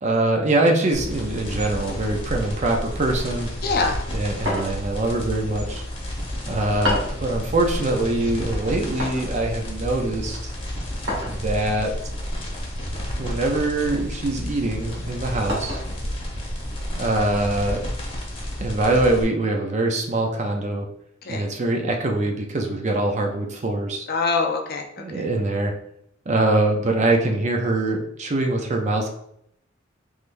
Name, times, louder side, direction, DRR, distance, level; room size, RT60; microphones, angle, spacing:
voice 1, 0.0-3.5 4.1-5.8 6.5-10.5 11.2-11.9 13.2-15.8 16.9-17.9 18.6-20.9 21.3-24.1 25.0-25.7 26.3-29.1, right 2 dB, 35° right, 2 dB, 0.5 m, -23 dB
sound 1, 0.9-19.2, equal, 25° left, 0.9 m, -31 dB
voice 2, 3.6-4.0 21.2-21.4 24.1-25.3, left 4 dB, 50° left, 3 dB, 0.6 m, -24 dB
sound 2, 4.4-5.0 6.8-7.2 9.0-9.3 11.1-11.4 12.9-13.3 13.9-14.1 15.5-15.9, left 1 dB, 85° right, 1.3 m, -28 dB
3.7 x 3.2 x 2.6 m, 0.72 s
head